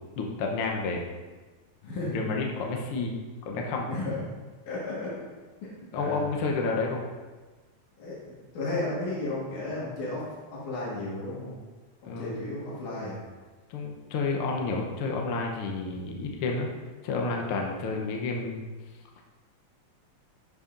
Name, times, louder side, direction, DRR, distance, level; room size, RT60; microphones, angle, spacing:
voice 1, 0.2-1.0 2.1-3.2 3.5-3.9 5.9-7.0 12.0-12.4 13.7-16.7 17.0-18.7, left 3 dB, 70° left, 1 dB, 1.3 m, -30 dB
voice 2, 1.8-2.2 2.7-2.8 3.9-4.2 4.7-5.2 5.6-6.4 8.0-10.2 10.5-11.6 12.0-13.2, left 2 dB, 90° left, -6 dB, 3.1 m, -34 dB
11.0 x 6.8 x 2.5 m, 1.3 s
omnidirectional pair, 3.4 m